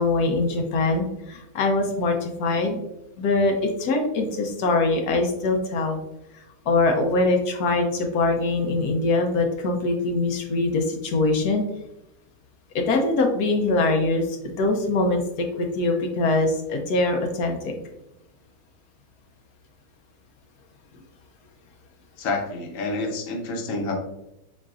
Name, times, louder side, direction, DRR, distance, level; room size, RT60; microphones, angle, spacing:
voice 1, 0.0-2.8 3.2-6.0 6.4-11.6 12.7-17.7, left 2 dB, 85° left, 2 dB, 1.3 m, -23 dB
voice 2, 22.2-23.9, left 3 dB, 60° left, 2 dB, 1.2 m, -28 dB
4.9 x 4.1 x 2.4 m, 0.87 s
omnidirectional pair, 1.6 m